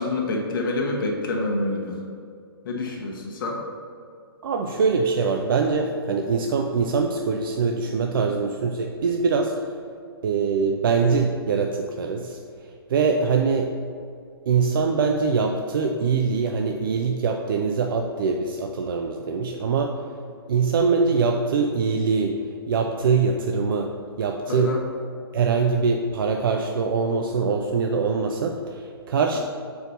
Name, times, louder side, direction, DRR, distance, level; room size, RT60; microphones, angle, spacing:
voice 1, 0.0-2.0 2.6-3.6 8.1-8.3 24.5-24.8, left 2 dB, 60° left, 0 dB, 1.1 m, -27 dB
voice 2, 4.4-9.5 10.2-12.4 12.9-13.7 14.5-20.0 20.5-22.4 22.7-23.9 24.2-24.7 25.3-29.4, right 5 dB, 60° right, 3 dB, 0.5 m, -23 dB
6.6 x 4.7 x 4.0 m, 2.4 s
figure-of-eight pair, 120°, 13 cm